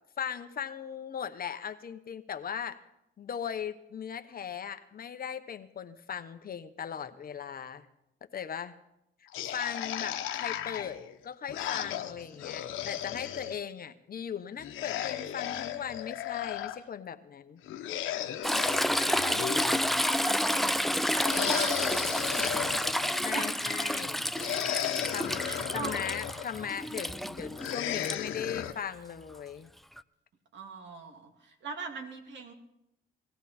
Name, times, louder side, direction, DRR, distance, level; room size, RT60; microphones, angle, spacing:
voice 1, 0.2-2.8 3.2-7.9 8.3-8.7 9.5-17.6 23.2-24.3 25.1-25.4 25.7-29.7, left 8 dB, 50° left, 9 dB, 1.0 m, -38 dB
sound 1, 9.3-13.6 14.6-16.8 17.6-20.0 21.1-23.4 24.3-26.5 27.6-28.7, left 11 dB, 85° left, 1.0 m, -35 dB
Toilet flush / Trickle dribble, 18.4-28.2 30.0-30.1, equal, ahead, 0.4 m, -30 dB
voice 2, 18.9-22.7 23.3-23.7 25.4-26.0 30.5-32.5, right 4 dB, 65° right, 3 dB, 2.6 m, -42 dB
19.0 x 14.5 x 4.4 m, 0.84 s
cardioid pair, 90°, 20 cm